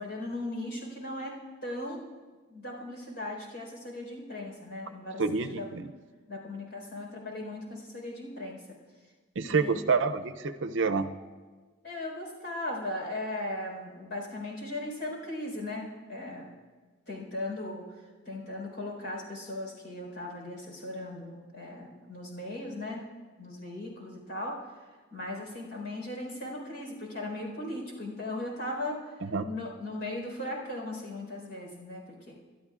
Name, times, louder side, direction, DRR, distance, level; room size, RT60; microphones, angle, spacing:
voice 1, 0.0-2.1 2.5-5.6 6.3-8.6 9.5-9.8 11.8-16.5 17.1-17.9 18.2-23.0 23.4-24.8 25.1-32.3, left 1 dB, 60° left, -1 dB, 4.4 m, -38 dB
voice 2, 5.2-5.8 9.4-11.1 29.2-29.5, right 4 dB, 70° right, 9 dB, 0.6 m, -28 dB
28.5 x 12.0 x 2.5 m, 1.4 s
head